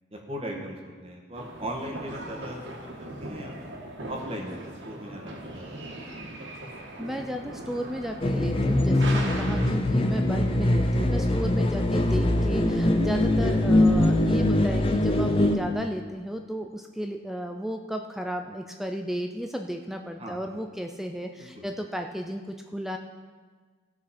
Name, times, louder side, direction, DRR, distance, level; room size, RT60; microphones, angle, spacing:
voice 1, 0.1-3.7 4.0-6.4 10.6-10.7 20.2-20.4 21.4-21.6, equal, 30° right, -1 dB, 1.4 m, -39 dB
sound 1, 1.3-9.7, right 1 dB, 60° right, 1.7 m, -39 dB
voice 2, 6.8-23.0, equal, ahead, 4 dB, 0.4 m, -33 dB
sound 2, 8.2-15.6, left 1 dB, 25° left, 0.7 m, -22 dB
16.5 x 6.3 x 4.3 m, 1.4 s
head